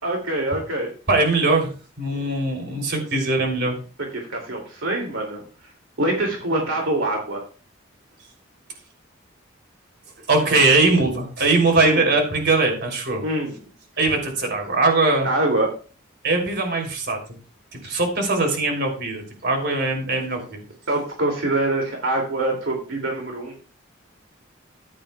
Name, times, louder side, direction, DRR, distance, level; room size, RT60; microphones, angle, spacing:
voice 1, 0.0-0.9 4.1-5.4 6.0-7.4 11.8-12.1 13.2-13.6 15.2-15.7 20.9-23.5, right 1 dB, 75° right, 1 dB, 2.5 m, -24 dB
voice 2, 1.1-3.7 10.3-13.2 14.0-15.3 16.2-17.2 17.7-20.6, right 3 dB, 60° right, 3 dB, 3.1 m, -21 dB
14.5 x 10.0 x 2.3 m, 0.36 s
head